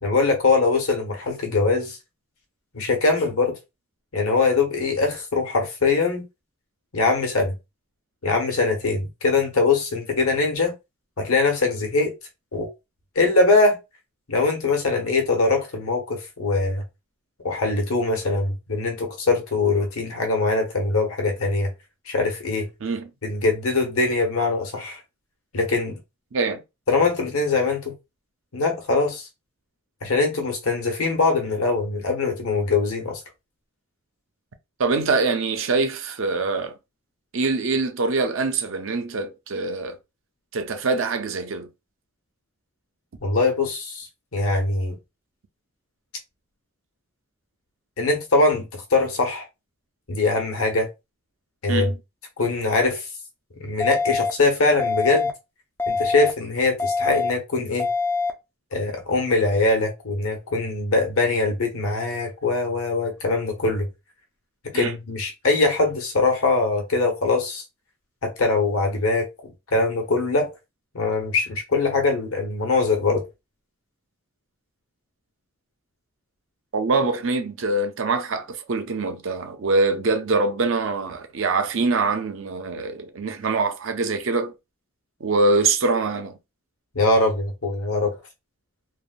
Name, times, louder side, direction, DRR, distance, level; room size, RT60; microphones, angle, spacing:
voice 1, 0.0-2.0 2.7-3.6 4.1-6.2 6.9-7.5 8.2-10.7 11.2-12.1 12.5-12.7 13.1-13.8 14.3-16.8 17.4-21.7 22.1-22.7 23.2-25.0 25.5-26.0 26.9-27.9 28.5-29.3 30.0-33.2 43.2-44.1 44.3-45.0 48.0-49.5 50.1-50.9 51.6-51.9 52.4-53.0 53.6-55.3 55.9-57.9 58.7-63.9 64.6-67.6 68.2-70.5 70.9-73.2 86.9-88.2, left 3 dB, 75° left, 1.0 m, -22 dB
voice 2, 22.8-23.1 26.3-26.6 34.8-36.7 37.3-40.0 40.5-41.7 51.7-52.0 64.7-64.9 76.7-84.5 85.2-86.4, right 3 dB, 60° right, 0.5 m, -24 dB
sound 1, 53.8-54.3 54.8-55.3 55.8-56.3 56.8-57.3 57.8-58.3, left 4 dB, 10° left, 0.3 m, -24 dB
3.3 x 2.1 x 2.3 m
head